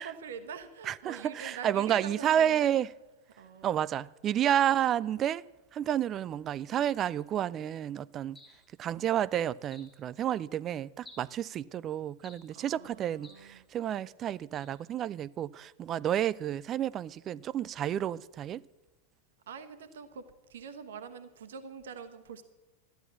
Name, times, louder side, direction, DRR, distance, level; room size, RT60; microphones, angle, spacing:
voice 1, 0.0-2.7 3.4-3.8 12.5-13.7 19.5-20.2 20.5-22.4, right 6 dB, 60° right, 1.1 m, -44 dB
voice 2, 0.9-2.9 3.6-5.4 5.7-8.4 8.8-18.6, right 10 dB, 30° right, 0.4 m, -30 dB
sound 1, 8.3-8.7 9.7-10.0 11.0-11.4 12.2-12.5 13.2-13.5 14.5-14.8, left 2 dB, 10° left, 3.4 m, -54 dB
13.5 x 10.5 x 8.5 m
figure-of-eight pair, 90°, 0 cm